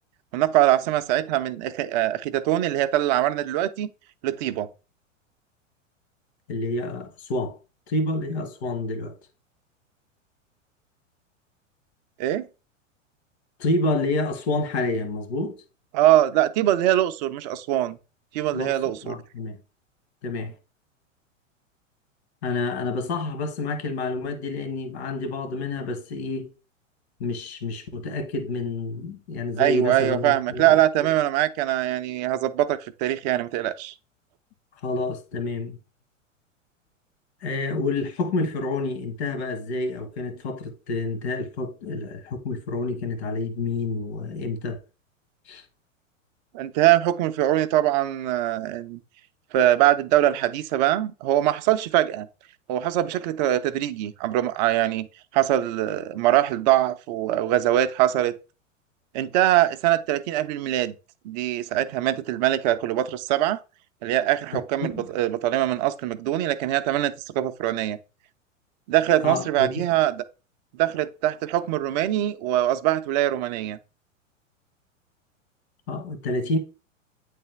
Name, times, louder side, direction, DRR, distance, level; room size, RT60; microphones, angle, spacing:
voice 1, 0.3-3.9 4.2-4.7 12.2-12.5 15.9-18.0 18.3-19.2 29.6-33.9 46.5-49.0 49.5-52.3 52.7-55.1 55.3-58.3 59.1-60.9 61.2-63.6 64.0-68.0 68.9-70.2 70.7-73.8, right 13 dB, 35° right, 0.5 m, -23 dB
voice 2, 6.5-7.6 7.9-9.1 13.6-15.6 18.5-18.7 19.0-19.6 20.2-20.5 22.4-26.5 27.2-30.8 34.8-35.8 37.4-44.8 45.5-45.6 64.8-65.1 69.2-69.7 75.9-76.6, left 2 dB, 55° left, 1.4 m, -28 dB
8.7 x 3.3 x 3.3 m
figure-of-eight pair, 95°, 39 cm